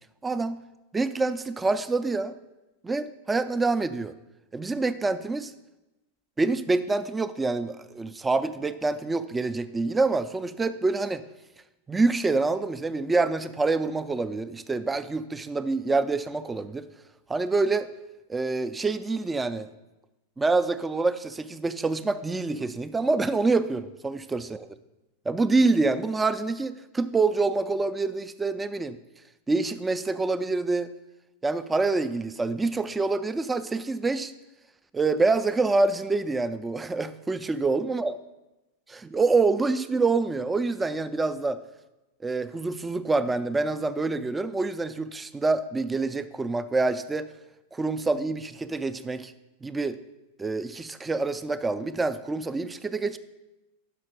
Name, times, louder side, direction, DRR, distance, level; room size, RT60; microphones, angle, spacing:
voice 1, 0.2-0.6 0.9-2.3 2.8-4.1 4.5-5.5 6.4-11.2 11.9-16.9 17.3-17.9 18.3-19.7 20.4-24.7 25.3-29.0 29.5-30.9 31.4-34.3 34.9-38.1 38.9-41.6 42.2-47.3 47.7-49.3 49.6-50.0 50.4-53.2, right 3 dB, 10° right, 13 dB, 0.3 m, -26 dB
5.8 x 5.7 x 5.1 m, 1.0 s
figure-of-eight pair, 90°, 0 cm